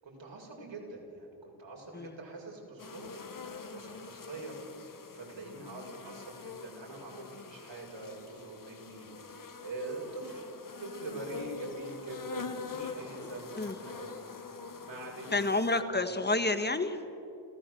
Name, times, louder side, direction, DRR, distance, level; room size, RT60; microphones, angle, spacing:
voice 1, 0.0-10.5 10.8-15.4 15.8-16.2, right 2 dB, 60° right, -1 dB, 6.7 m, -44 dB
sound 1, 2.8-15.8, left 5 dB, 40° left, 1.7 m, -45 dB
voice 2, 15.3-17.0, left 2 dB, 20° left, 10 dB, 1.7 m, -29 dB
29.5 x 15.5 x 7.9 m, 2.8 s
cardioid pair, 65°, 50 cm